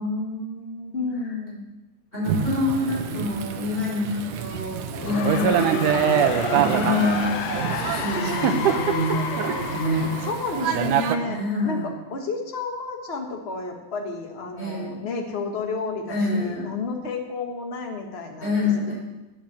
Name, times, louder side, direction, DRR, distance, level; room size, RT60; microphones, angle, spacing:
voice 1, 0.0-1.0 2.1-7.4 7.7-10.1 11.2-11.9 14.6-15.0 16.1-16.8 18.4-18.9, left 2 dB, 15° left, -6 dB, 5.4 m, -27 dB
voice 2, 0.9-1.6 10.2-18.6, left 3 dB, 50° left, 3 dB, 0.7 m, -31 dB
Thunder / Rain, 2.3-11.2, right 8 dB, 80° right, 2.3 m, -25 dB
sound 1, 4.7-11.7, left 8 dB, 80° left, 2.4 m, -32 dB
11.0 x 9.0 x 7.4 m, 1.0 s
omnidirectional pair, 3.6 m